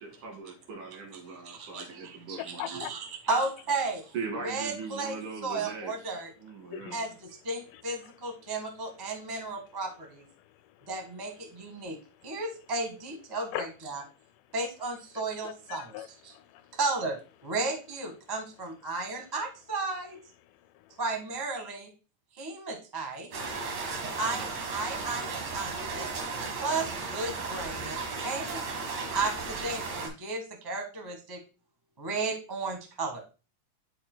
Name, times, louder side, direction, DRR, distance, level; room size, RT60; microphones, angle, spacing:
voice 1, 0.0-2.9 4.1-6.0 6.4-7.1, right 4 dB, 80° right, 3.8 m, -40 dB
voice 2, 1.4-1.8 2.3-3.0 3.3-4.1 4.4-6.3 6.9-7.1 7.4-10.2 10.9-12.0 12.2-14.0 14.5-15.9 16.8-17.2 17.4-20.2 21.0-21.9 22.4-23.3 24.2-26.1 26.6-28.0 28.2-31.4 32.0-33.2, right 3 dB, 35° right, 0.3 m, -34 dB
voice 3, 2.4-2.9 6.7-7.0 7.7-8.1 9.4-9.5 10.4-10.9 11.6-11.9 12.2-12.4 13.5-13.7 15.4-16.8 20.5-21.0, left 14 dB, 85° left, 2.1 m, -42 dB
sound 1, 23.3-30.1, right 4 dB, 60° right, 2.6 m, -35 dB
13.0 x 4.4 x 2.2 m
omnidirectional pair, 3.6 m